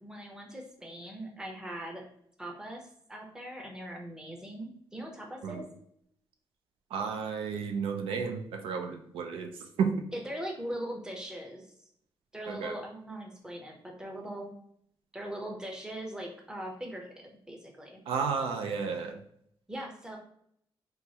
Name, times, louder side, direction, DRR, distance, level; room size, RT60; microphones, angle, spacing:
voice 1, 0.0-2.0 2.4-5.6 10.1-11.7 12.3-14.5 15.1-18.0 19.7-20.2, right 1 dB, 5° right, 1 dB, 0.6 m, -40 dB
voice 2, 6.9-9.9 12.5-12.7 18.1-19.2, right 6 dB, 85° right, 4 dB, 0.4 m, -32 dB
3.0 x 2.3 x 2.7 m, 0.69 s
cardioid pair, 110°, 9 cm